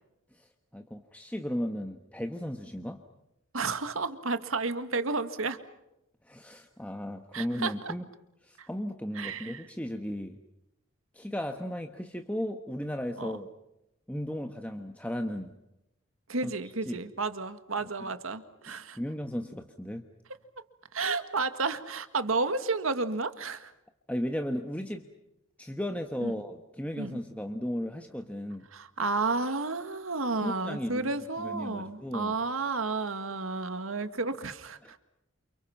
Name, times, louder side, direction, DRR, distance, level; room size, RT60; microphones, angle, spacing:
voice 1, 0.3-3.0 6.2-8.0 8.4-10.4 11.1-13.5 14.1-15.5 16.4-16.5 16.9-17.0 18.7-20.0 24.1-25.0 25.6-28.7 30.4-31.1 31.4-32.3 34.8-34.9, equal, 5° left, 4 dB, 1.2 m, -35 dB
voice 2, 3.5-5.6 7.3-7.7 8.6-8.7 9.2-9.6 13.2-13.4 16.3-19.0 20.9-23.7 26.2-26.3 27.0-27.2 28.7-35.0, right 3 dB, 80° right, 10 dB, 1.9 m, -32 dB
29.5 x 29.0 x 5.9 m, 0.88 s
head